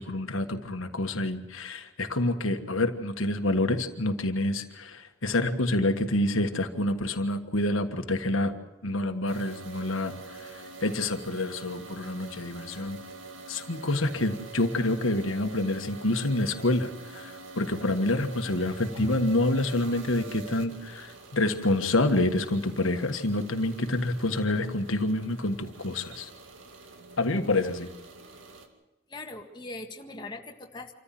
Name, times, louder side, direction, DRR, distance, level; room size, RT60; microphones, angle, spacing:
voice 1, 0.0-8.5 8.8-10.1 10.4-13.0 13.5-26.3 27.2-27.9, left 2 dB, 90° left, 6 dB, 1.6 m, -27 dB
sound 1, 9.3-28.7, right 3 dB, 75° right, 2.4 m, -46 dB
voice 2, 29.1-30.9, left 2 dB, 20° left, 2 dB, 1.8 m, -40 dB
26.5 x 14.5 x 7.6 m, 1.1 s
head